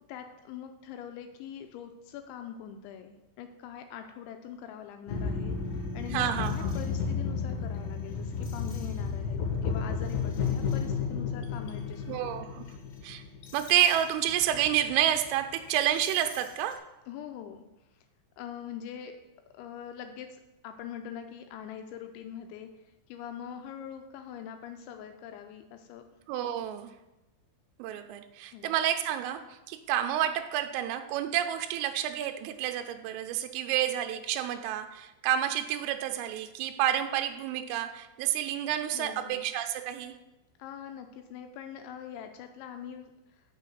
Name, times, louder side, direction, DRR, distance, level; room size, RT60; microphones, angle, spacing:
voice 1, 0.1-12.4 17.1-17.6 17.9-18.1 18.4-19.2 19.5-26.0 28.5-28.8 38.9-39.4 40.6-43.1, left 9 dB, 85° left, 6 dB, 2.6 m, -43 dB
sound 1, 5.1-16.7, left 5 dB, 65° left, 2.1 m, -33 dB
voice 2, 6.1-6.7 12.1-12.6 13.0-13.2 13.5-16.8 26.3-26.9 27.8-40.2, right 11 dB, 85° right, 7 dB, 3.2 m, -29 dB
6.6 x 6.4 x 7.7 m, 0.96 s
omnidirectional pair, 6.0 m